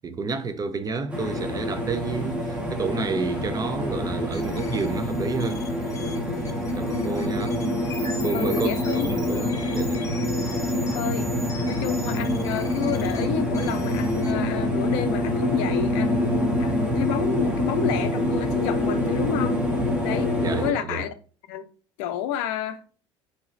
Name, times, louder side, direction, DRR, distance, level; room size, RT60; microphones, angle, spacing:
voice 1, 0.0-5.6 6.6-7.6 8.2-10.0 20.4-21.0, right 4 dB, 25° right, 0.6 m, -30 dB
sound 1, 1.1-20.7, left 1 dB, 10° right, 1.4 m, -26 dB
sound 2, 4.3-14.3, left 2 dB, 20° left, 1.1 m, -41 dB
voice 2, 6.9-7.2 8.3-9.6 10.9-11.3 11.7-19.6 20.0-20.3 20.6-21.1 21.5-21.6 22.0-22.8, left 9 dB, 60° left, 0.5 m, -30 dB
4.8 x 2.8 x 2.6 m
figure-of-eight pair, 65°, 15 cm